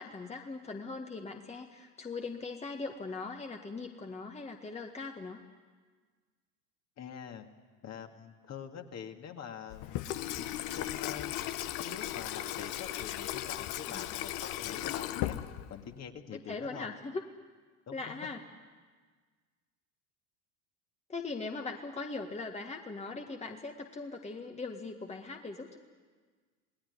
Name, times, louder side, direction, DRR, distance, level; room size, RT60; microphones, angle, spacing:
voice 1, 0.0-5.4 13.9-14.0 16.3-17.2 17.9-18.4 21.1-25.8, left 3 dB, 15° left, 3 dB, 1.8 m, -40 dB
voice 2, 7.0-7.5 7.8-10.0 10.4-10.5 10.7-11.4 11.8-15.3 15.7-16.9 17.9-18.3, left 7 dB, 35° left, 4 dB, 2.4 m, -45 dB
Water tap faucet / Sink (filling or washing), 9.7-16.0, left 13 dB, 50° left, 1.3 m, -36 dB
28.0 x 19.0 x 9.9 m, 1.5 s
hypercardioid pair, 80°, 45 cm